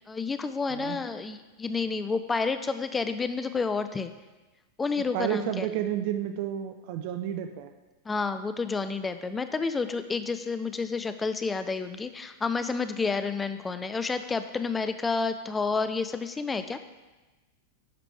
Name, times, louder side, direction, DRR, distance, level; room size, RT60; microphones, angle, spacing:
voice 1, 0.1-4.1 4.8-5.7 8.1-16.8, left 4 dB, 15° left, 10 dB, 0.4 m, -30 dB
voice 2, 5.1-7.7, right 11 dB, 45° right, 8 dB, 0.5 m, -31 dB
10.5 x 4.9 x 3.5 m, 1.1 s
figure-of-eight pair, 90°, 0 cm